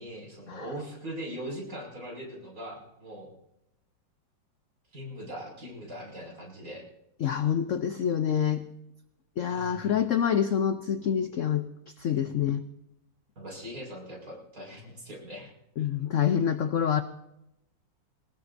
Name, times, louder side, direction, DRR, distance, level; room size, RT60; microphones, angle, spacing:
voice 1, 0.0-3.3 4.9-6.8 9.5-10.0 12.1-12.5 13.4-15.5 15.8-15.9, equal, 45° right, -1 dB, 6.0 m, -41 dB
voice 2, 7.2-8.6 9.4-11.7 12.0-12.6 15.8-17.0, left 8 dB, 65° left, 10 dB, 0.7 m, -26 dB
22.5 x 19.0 x 2.7 m, 0.85 s
omnidirectional pair, 2.0 m